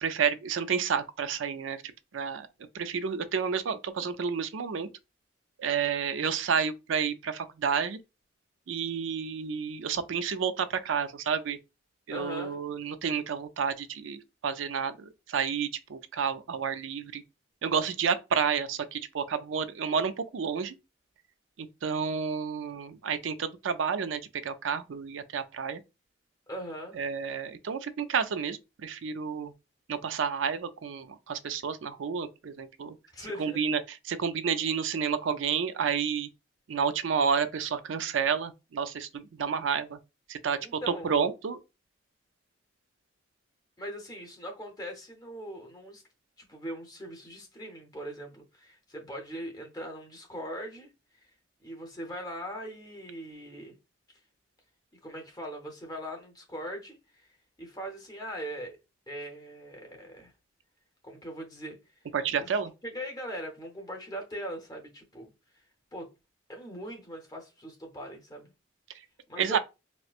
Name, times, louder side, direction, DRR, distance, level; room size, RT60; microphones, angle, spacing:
voice 1, 0.0-1.8 2.1-2.5 2.7-4.9 5.6-8.0 8.7-11.6 12.1-17.2 17.6-20.8 21.6-25.8 26.9-29.5 29.9-33.0 33.4-36.3 36.7-40.0 40.3-41.6 62.1-62.7 69.4-69.6, right 6 dB, 75° right, 0.4 m, -30 dB
voice 2, 12.1-12.6 26.5-27.0 33.1-33.6 40.6-41.1 43.8-46.0 46.4-50.9 51.2-51.3 51.6-53.8 55.0-58.8 59.1-60.3 61.0-62.1 62.4-62.5 62.8-65.6 65.9-66.1 66.5-68.5 69.3-69.6, equal, 20° left, 0.8 m, -40 dB
4.3 x 2.1 x 2.4 m
head